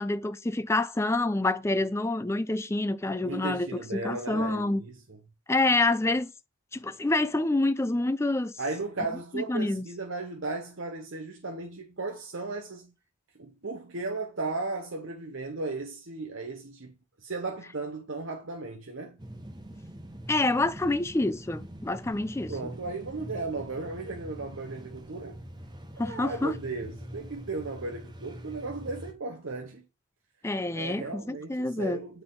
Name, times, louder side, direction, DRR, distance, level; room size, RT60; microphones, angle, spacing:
voice 1, 0.0-4.8 5.5-6.3 6.7-8.5 9.3-9.9 20.3-22.5 26.0-26.6 30.4-32.0, left 2 dB, 15° left, 0.3 m, -27 dB
voice 2, 3.2-5.2 8.6-12.9 13.4-16.9 17.2-19.2 22.5-25.4 26.0-29.9 30.7-32.2, right 3 dB, 65° right, 0.9 m, -36 dB
sound 1, 19.2-29.1, right 1 dB, 20° right, 0.8 m, -44 dB
9.4 x 4.0 x 3.7 m
head